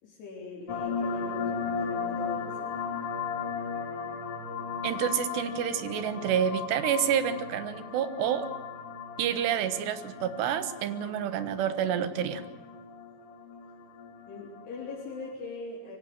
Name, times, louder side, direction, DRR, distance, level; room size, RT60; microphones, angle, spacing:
voice 1, 0.0-2.6 14.3-16.0, left 3 dB, 70° left, -4 dB, 5.7 m, -41 dB
sound 1, 0.7-15.3, left 5 dB, 45° left, 2.6 m, -36 dB
voice 2, 4.8-8.5 9.2-12.4, right 9 dB, 80° right, 11 dB, 3.5 m, -28 dB
24.5 x 16.0 x 8.9 m, 1.2 s
omnidirectional pair, 4.9 m